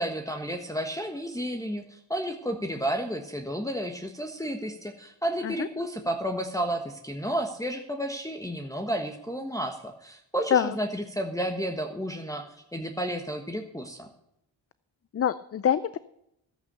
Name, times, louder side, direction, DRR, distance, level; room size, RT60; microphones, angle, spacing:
voice 1, 0.0-14.1, right 1 dB, 10° left, 3 dB, 1.4 m, -32 dB
voice 2, 15.1-16.0, left 8 dB, 35° left, 16 dB, 0.5 m, -25 dB
13.5 x 8.3 x 6.8 m, 0.80 s
cardioid pair, 80°, 43 cm